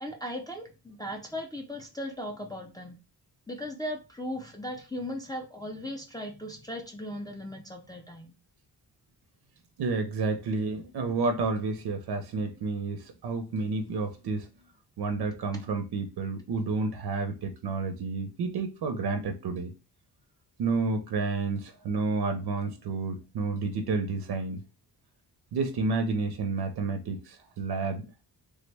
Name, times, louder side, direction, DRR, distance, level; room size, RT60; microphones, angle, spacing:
voice 1, 0.0-3.0 3.5-8.3, left 1 dB, 10° left, 0.4 m, -37 dB
voice 2, 9.8-14.5 15.0-19.7 20.6-24.6 25.5-28.0, right 4 dB, 85° right, 0.6 m, -30 dB
3.3 x 2.1 x 3.2 m
wide cardioid pair, 170°, 39 cm